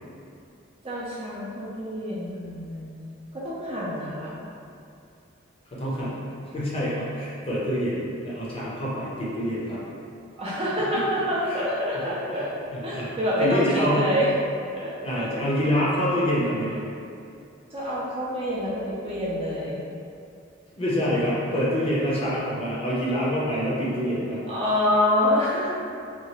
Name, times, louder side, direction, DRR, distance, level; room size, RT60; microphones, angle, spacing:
voice 1, 0.8-2.9 3.3-4.3 10.4-12.5 12.8-14.3 14.7-15.3 17.7-19.8 24.5-25.7, left 1 dB, 30° right, -7 dB, 0.5 m, -26 dB
voice 2, 5.7-6.1 6.5-9.8 10.8-10.9 11.4-11.6 12.3-12.4 12.7-13.1 13.4-14.1 15.0-16.9 20.8-24.4, equal, 30° left, -7 dB, 0.6 m, -26 dB
2.9 x 2.4 x 2.9 m, 2.5 s
head